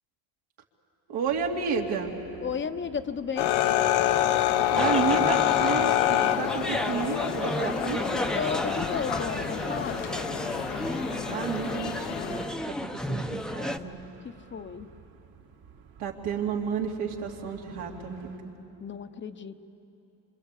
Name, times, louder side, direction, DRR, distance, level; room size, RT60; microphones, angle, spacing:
voice 1, 1.1-2.1 4.7-8.2 11.3-14.0 16.0-18.5, right 6 dB, 85° right, 1 dB, 2.7 m, -31 dB
sound 1, 1.2-18.4, right 6 dB, 65° right, 2.6 m, -50 dB
voice 2, 2.4-3.5 8.3-10.0 14.2-14.9 18.8-19.6, left 6 dB, 30° left, 9 dB, 0.8 m, -33 dB
sound 2, 3.4-12.5, left 12 dB, 85° left, 1.0 m, -27 dB
sound 3, 4.7-13.8, left 1 dB, ahead, 0.7 m, -32 dB
26.0 x 26.0 x 8.3 m, 2.9 s
cardioid pair, 135°, 38 cm